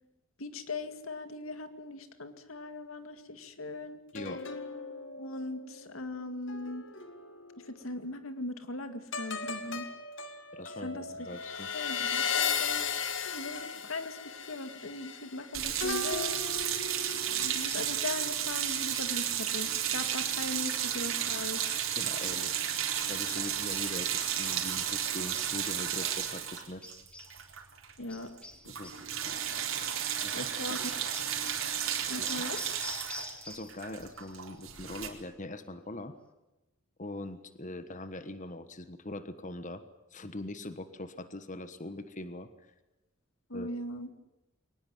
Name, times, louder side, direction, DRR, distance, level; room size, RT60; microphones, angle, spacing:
voice 1, 0.4-4.0 5.1-6.8 7.6-9.9 10.8-11.1 11.7-16.7 17.3-21.8 28.0-28.3 30.3-30.9 32.1-32.6 43.5-44.1, left 2 dB, 85° left, 9 dB, 2.2 m, -39 dB
sound 1, 4.1-7.8 9.1-17.6 18.1-18.3, left 6 dB, 65° left, 2.1 m, -36 dB
voice 2, 10.5-11.7 22.0-26.8 28.7-28.9 29.2-29.4 30.2-30.5 32.2-32.4 33.5-36.1 37.0-39.8 40.1-42.7 43.5-43.8, left 2 dB, 35° left, 11 dB, 1.3 m, -42 dB
sound 2, 15.5-27.9 28.2-28.4 28.6-35.1, right 9 dB, 80° right, 4.1 m, -33 dB
sound 3, 17.0-18.4 18.6-19.3 20.1-21.0 23.4-24.3 25.0-25.9 26.8-27.4 28.1-29.1 29.5-29.8 30.8-33.9 34.1-34.6, left 1 dB, 5° left, 2.2 m, -48 dB
23.0 x 19.5 x 9.5 m, 0.98 s
head